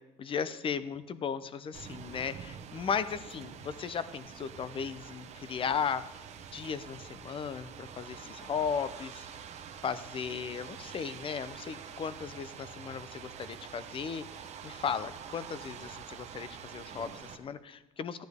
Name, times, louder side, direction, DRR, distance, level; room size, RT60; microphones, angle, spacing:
voice 1, 0.2-6.0 6.5-9.3 9.8-14.2 14.6-18.2, left 6 dB, 40° left, 15 dB, 0.6 m, -36 dB
sound 1, 1.7-17.4, right 7 dB, 50° right, 1.0 m, -46 dB
12.5 x 10.0 x 3.6 m, 1.0 s
supercardioid pair, 90°, 15 cm